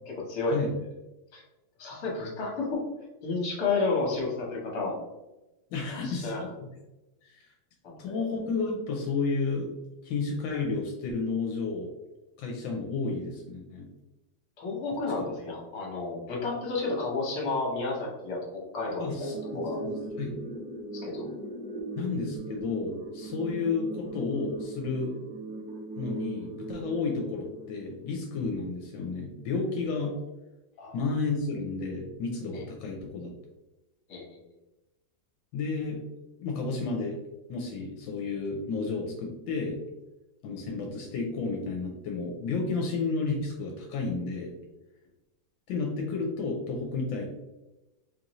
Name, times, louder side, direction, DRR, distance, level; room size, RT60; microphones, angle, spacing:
voice 1, 0.1-0.6 1.3-1.4 1.8-2.8 3.2-4.9 5.9-6.4 7.8-8.2 14.6-18.4 18.7-19.8 20.9-21.3 30.8-31.0 32.5-32.6 34.1-34.4, left 3 dB, 55° left, -2 dB, 1.5 m, -31 dB
voice 2, 5.7-6.7 7.2-7.4 8.0-9.7 10.0-11.9 12.4-13.9 19.0-20.4 22.0-25.1 26.0-30.1 30.9-33.3 35.5-36.0 36.4-37.2 37.5-39.8 40.4-44.5 45.7-47.3, left 4 dB, 80° left, 0 dB, 1.3 m, -32 dB
sound 1, 19.1-28.1, right 2 dB, 65° right, 1.0 m, -39 dB
4.0 x 2.6 x 3.0 m, 1.0 s
omnidirectional pair, 2.1 m